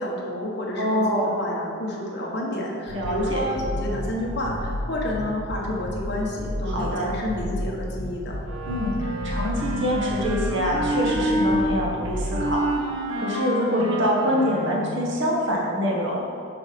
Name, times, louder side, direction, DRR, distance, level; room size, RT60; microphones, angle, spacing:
voice 1, 0.0-8.4, left 1 dB, 55° left, -2 dB, 1.4 m, -29 dB
voice 2, 0.8-1.3 2.9-3.4 6.7-7.1 8.6-12.6 13.1-16.2, equal, 60° right, -3 dB, 1.6 m, -25 dB
sound 1, 2.9-12.5, left 1 dB, 70° left, 0.7 m, -32 dB
Wind instrument woodwind instrument, 8.4-11.7 12.3-15.1, right 1 dB, 75° right, 0.9 m, -28 dB
7.3 x 5.3 x 5.3 m, 2.2 s
head